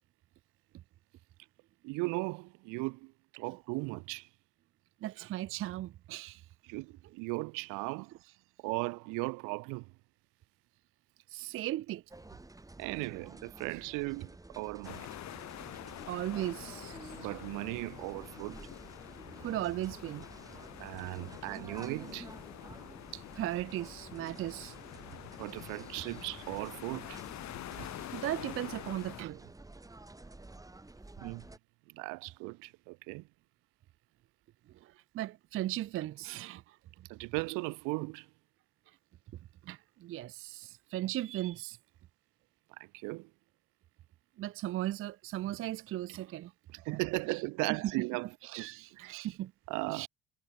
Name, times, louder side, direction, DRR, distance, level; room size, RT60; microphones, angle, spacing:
voice 1, 1.8-4.3 6.6-8.1 8.6-9.9 12.8-15.1 17.1-18.7 20.8-22.3 25.4-27.2 31.2-31.4 31.9-33.3 37.1-38.3 42.8-43.3 46.7-48.3 48.6-49.1 49.7-50.1, right 27 dB, 75° right, 1.0 m, -37 dB
voice 2, 5.0-6.5 11.3-12.0 16.1-17.3 19.4-20.2 23.1-24.8 27.8-29.5 34.7-37.1 39.6-41.8 44.4-46.5 47.3-47.4 47.7-47.9 48.4-49.5 49.9-50.1, right 14 dB, 40° right, 0.4 m, -37 dB
sound 1, 12.1-31.6, right 2 dB, 10° right, 1.7 m, -51 dB
sound 2, 14.8-29.2, left 13 dB, 60° left, 1.7 m, -47 dB
hypercardioid pair, 65°, 32 cm